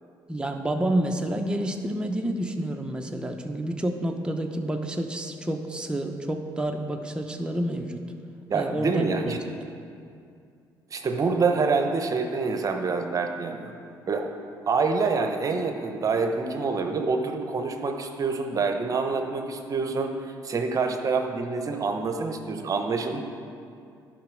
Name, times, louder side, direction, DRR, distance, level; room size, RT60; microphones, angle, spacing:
voice 1, 0.3-8.0 8.5-9.1, right 1 dB, 10° right, 3 dB, 0.8 m, -29 dB
voice 2, 8.5-9.4 10.9-13.7 14.1-14.3 14.7-20.1 20.4-23.2, right 4 dB, 45° right, 5 dB, 0.8 m, -26 dB
10.0 x 5.2 x 6.2 m, 2.4 s
supercardioid pair, 70°, 8 cm